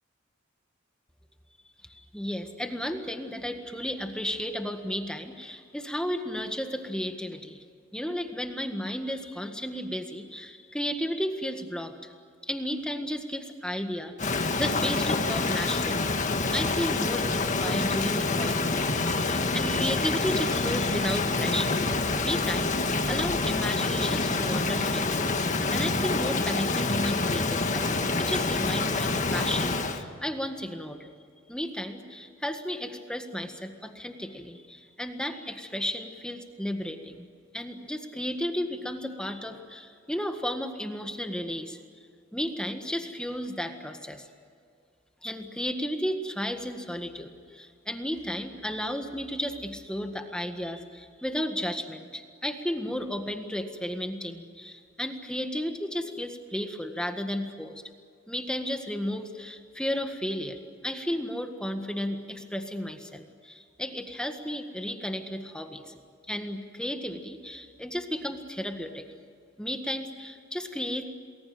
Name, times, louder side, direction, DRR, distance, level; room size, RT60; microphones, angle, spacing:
voice 1, 1.9-7.6 7.9-12.1 12.4-16.1 16.5-21.9 22.2-25.2 25.7-27.9 28.2-31.1 31.5-37.3 37.5-41.8 42.3-44.3 45.2-57.8 58.3-66.0 66.3-69.1 69.6-71.1, equal, 5° left, 5 dB, 1.7 m, -33 dB
Rain, 14.2-30.0, left 3 dB, 40° left, 1.8 m, -27 dB
29.0 x 20.5 x 7.8 m, 2.2 s
head